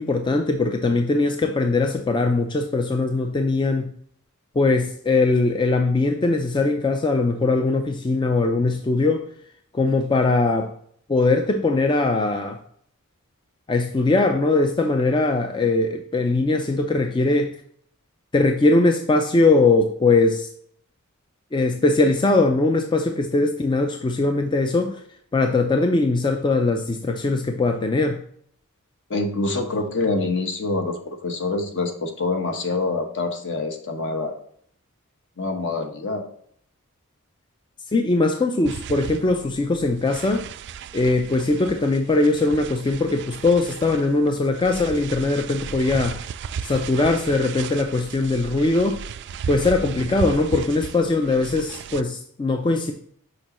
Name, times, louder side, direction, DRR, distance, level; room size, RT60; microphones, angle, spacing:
voice 1, 0.0-3.9 4.6-9.3 9.7-10.7 11.1-12.6 13.7-17.5 18.3-20.5 21.5-25.0 25.3-28.2 37.9-40.5 40.9-46.2 46.6-49.0 49.5-52.9, left 3 dB, 20° left, 5 dB, 0.4 m, -21 dB
voice 2, 29.1-34.3 35.4-36.2, left 3 dB, 55° left, 4 dB, 1.1 m, -26 dB
sound 1, 38.6-52.0, right 6 dB, 50° right, 0.3 m, -35 dB
6.5 x 5.3 x 3.0 m, 0.64 s
head